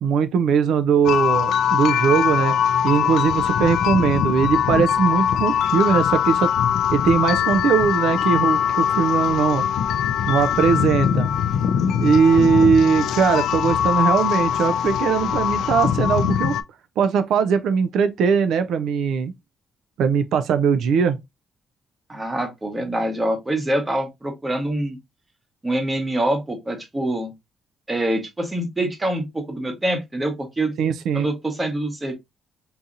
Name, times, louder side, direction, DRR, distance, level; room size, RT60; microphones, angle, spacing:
voice 1, 0.0-2.5 2.8-6.5 6.9-9.6 10.3-11.3 12.0-16.6 17.0-19.3 20.0-21.2 30.8-31.3, right 6 dB, 75° right, 0.3 m, -20 dB
sound 1, 1.0-16.6, left 9 dB, 85° left, 0.3 m, -21 dB
voice 2, 22.1-25.0 25.6-27.3 27.9-30.7 31.1-32.1, right 1 dB, 15° right, 0.9 m, -25 dB
3.8 x 2.7 x 2.4 m
cardioid pair, 170°, 0 cm